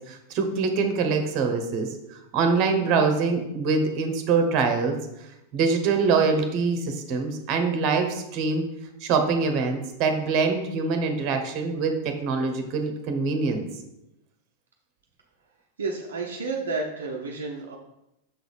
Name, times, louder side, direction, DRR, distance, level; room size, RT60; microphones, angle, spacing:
voice 1, 0.1-5.0 5.5-8.6 9.0-13.7, right 4 dB, 40° right, 5 dB, 1.1 m, -24 dB
voice 2, 15.8-17.8, right 3 dB, 65° right, 0 dB, 0.7 m, -31 dB
6.7 x 4.0 x 4.9 m, 0.86 s
figure-of-eight pair, 90°, 0 cm